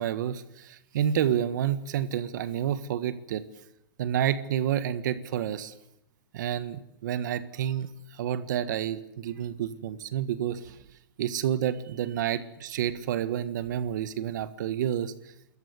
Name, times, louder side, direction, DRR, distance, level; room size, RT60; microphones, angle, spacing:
voice 1, 0.0-3.4 4.0-5.7 6.3-10.8 11.2-15.1, right 10 dB, 60° right, 12 dB, 1.6 m, -29 dB
28.0 x 14.0 x 9.6 m, 0.82 s
supercardioid pair, 165°, 11 cm